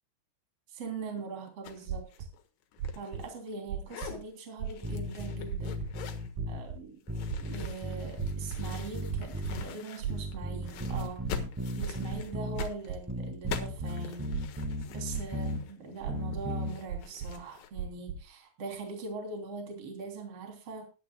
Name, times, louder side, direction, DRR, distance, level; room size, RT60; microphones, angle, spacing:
voice 1, 0.7-2.1 3.0-5.8 6.5-7.0 7.4-11.2 11.7-14.3 14.9-20.9, right 4 dB, 40° right, 3 dB, 4.0 m, -41 dB
sound 1, 1.6-1.8 2.1-3.6 3.8-4.2 4.7-6.3 7.1-10.4 10.6-17.7, left 7 dB, 90° left, 3.6 m, -45 dB
sound 2, 1.9-2.3 2.8-3.2 3.7-4.2 4.6-5.0 5.5-5.9 6.4-6.8 7.3-7.7 8.2-8.7 9.1-9.6 10.0-10.5 10.9-11.3 11.8-13.0 13.4-13.9 14.3-14.8 15.1-15.6 16.0-16.5 16.9-17.4 17.8-18.2, right 7 dB, 70° right, 3.2 m, -36 dB
sound 3, 4.8-6.6 7.1-9.7 10.1-12.6 13.1-15.6 16.1-16.7, equal, 15° right, 0.6 m, -36 dB
19.0 x 11.5 x 2.3 m, 0.31 s
omnidirectional pair, 4.6 m